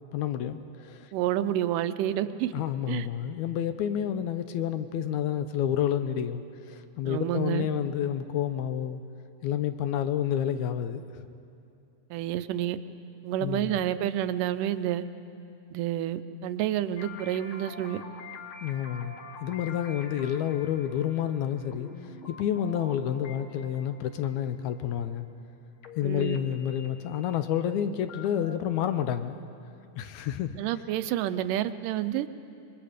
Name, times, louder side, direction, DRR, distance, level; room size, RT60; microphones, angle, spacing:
voice 1, 0.1-1.1 1.4-1.5 2.5-9.0 9.4-11.1 13.4-13.8 18.6-25.3 26.0-29.4 30.0-30.6, left 10 dB, 75° left, 10 dB, 1.9 m, -29 dB
voice 2, 1.1-2.5 2.9-3.1 7.1-7.7 12.1-12.8 13.2-15.0 15.7-18.0 26.0-26.4 30.6-32.3, right 12 dB, 85° right, 12 dB, 2.3 m, -29 dB
sound 1, 17.0-25.5 25.8-28.6, left 4 dB, 55° left, 1.7 m, -46 dB
26.0 x 22.0 x 5.1 m, 2.6 s
omnidirectional pair, 3.7 m